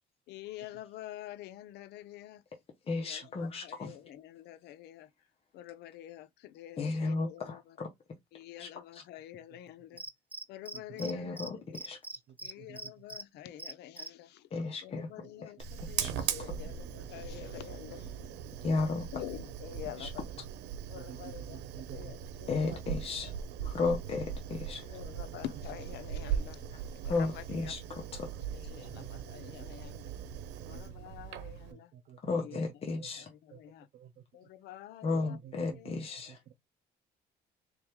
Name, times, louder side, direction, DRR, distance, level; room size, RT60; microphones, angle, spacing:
voice 1, 0.3-2.4 2.9-5.1 5.5-7.6 8.3-10.0 10.5-11.8 12.4-14.5 14.8-18.4 18.8-18.9 19.1-20.2 20.9-22.8 24.9-26.6 27.0-27.8 28.5-30.1 30.7-31.9 32.3-32.6 32.9-33.9 34.3-35.4 35.7-35.9, left 12 dB, 80° left, 0.6 m, -47 dB
voice 2, 2.9-4.0 6.8-7.9 8.6-9.0 11.0-12.0 14.5-15.1 15.4-15.5 16.0-16.3 18.6-19.1 20.0-20.1 22.5-23.3 23.6-25.0 26.7-26.8 27.1-28.3 32.2-33.3 35.0-36.4, left 3 dB, 35° left, 1.1 m, -34 dB
Cricket, 10.0-11.1 11.4-11.5 11.7-13.2 13.6-14.1, right 2 dB, 10° right, 0.5 m, -41 dB
voice 3, 12.1-12.9 15.2-15.3 15.7-16.9 17.4-17.5 20.4-20.5 20.9-22.1 25.2-25.4 26.2-26.4 28.7-29.7 30.6-30.9 31.7-32.6 33.0-33.1 33.5-33.6 33.9-34.5 35.3-36.5, right 9 dB, 55° right, 0.6 m, -52 dB
Fire, 15.6-31.7, right 9 dB, 85° right, 0.8 m, -40 dB
3.9 x 3.2 x 3.6 m
cardioid pair, 110°, 17 cm